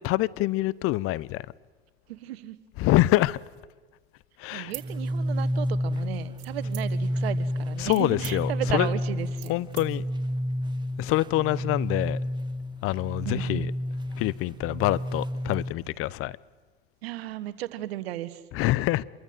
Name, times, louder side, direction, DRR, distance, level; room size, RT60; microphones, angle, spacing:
voice 1, 0.0-1.5 2.8-3.4 4.4-4.7 7.8-8.9 9.5-10.0 11.0-12.2 12.8-13.7 14.2-16.4 18.5-19.0, left 17 dB, 45° left, 0.7 m, -25 dB
voice 2, 2.1-2.6 4.5-9.5 13.2-13.7 17.0-18.4, right 14 dB, 75° right, 1.5 m, -35 dB
sound 1, 4.6-5.7 6.4-7.2 7.6-9.9, right 18 dB, 55° right, 3.5 m, -44 dB
sound 2, 4.7-15.7, equal, 15° right, 1.5 m, -30 dB
27.0 x 23.0 x 7.8 m
hypercardioid pair, 90°, 31 cm